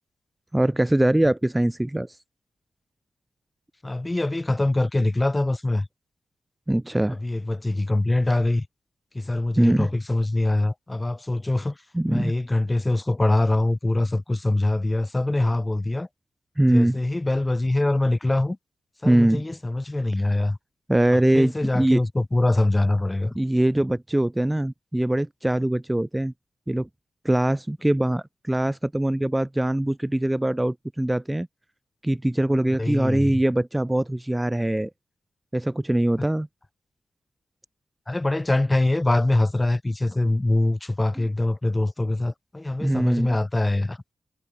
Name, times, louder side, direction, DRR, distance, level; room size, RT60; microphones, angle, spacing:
voice 1, 0.5-2.2 6.7-7.2 9.6-9.9 11.9-12.3 16.6-17.0 19.0-19.4 20.9-22.0 23.3-26.3 26.7-26.9 27.2-31.5 32.0-34.9 35.5-36.5 42.8-43.4, right 1 dB, 10° right, 1.5 m, -22 dB
voice 2, 3.8-5.9 7.1-8.6 9.1-11.8 12.1-16.1 16.7-18.6 19.0-20.6 21.3-23.4 32.8-33.4 38.1-44.0, left 2 dB, 15° left, 2.4 m, -23 dB
wide cardioid pair, 125°, 0 cm